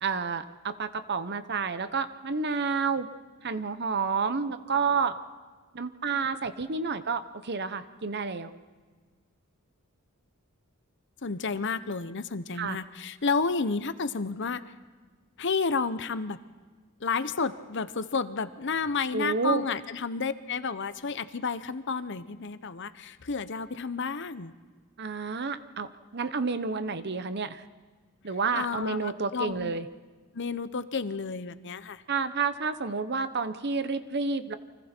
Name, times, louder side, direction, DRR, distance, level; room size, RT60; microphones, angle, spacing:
voice 1, 0.0-3.1 3.4-5.2 5.7-8.5 12.6-12.8 19.1-19.6 25.0-27.6 28.2-29.9 32.1-34.6, right 5 dB, 50° right, 11 dB, 1.0 m, -30 dB
voice 2, 11.2-14.6 15.4-16.4 17.0-24.5 28.5-29.7 30.3-32.0, left 4 dB, 55° left, 13 dB, 0.9 m, -31 dB
30.0 x 25.0 x 4.5 m, 1.5 s
head